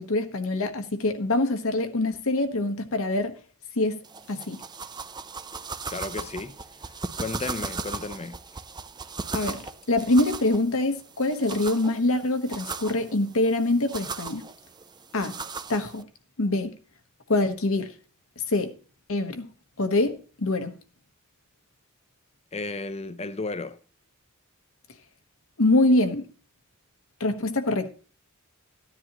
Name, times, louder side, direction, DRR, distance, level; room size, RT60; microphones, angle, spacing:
voice 1, 0.0-3.3 3.8-4.0 4.3-4.6 9.3-14.5 15.1-15.3 15.7-16.0 16.4-16.8 17.3-17.9 18.5-18.7 19.1-19.5 19.8-20.7 25.6-26.3 27.2-27.9, left 2 dB, 65° left, 1.2 m, -24 dB
sound 1, 4.0-16.0, right 4 dB, 20° right, 0.5 m, -38 dB
voice 2, 5.9-6.6 6.8-8.4 22.5-23.8, left 3 dB, 30° left, 0.7 m, -34 dB
14.5 x 10.0 x 3.0 m
head